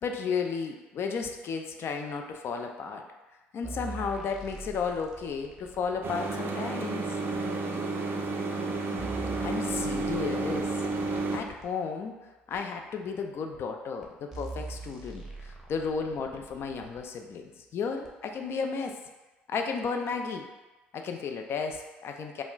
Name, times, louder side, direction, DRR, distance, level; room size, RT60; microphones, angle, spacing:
voice 1, 0.0-3.0 3.5-7.0 9.4-10.7 11.0-12.2 12.5-19.0 19.5-20.5 20.9-22.4, left 5 dB, 50° left, 4 dB, 0.4 m, -33 dB
sound 1, 3.6-6.4 7.3-7.4 8.2-8.3 8.7-11.7 12.5-12.6 13.5-13.6 14.0-14.1 14.3-17.0 18.0-18.1, right 2 dB, 5° right, 0.7 m, -43 dB
sound 2, 6.0-11.4, right 3 dB, 45° right, 0.4 m, -31 dB
2.2 x 2.0 x 3.8 m, 1.1 s
hypercardioid pair, 55°, 5 cm